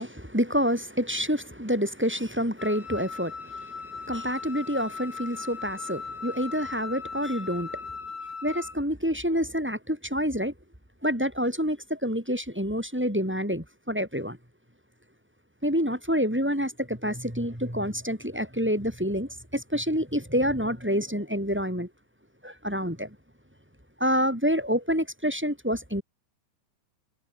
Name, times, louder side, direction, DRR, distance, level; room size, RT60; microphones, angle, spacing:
voice 1, 0.0-7.9 8.4-10.5 11.0-14.4 15.6-21.9 22.4-23.1 24.0-26.0, equal, 5° right, 4.8 m, -28 dB
Wind instrument woodwind instrument, 2.6-8.8, left 4 dB, 45° left, 6.4 m, -38 dB
omnidirectional pair, 5.0 m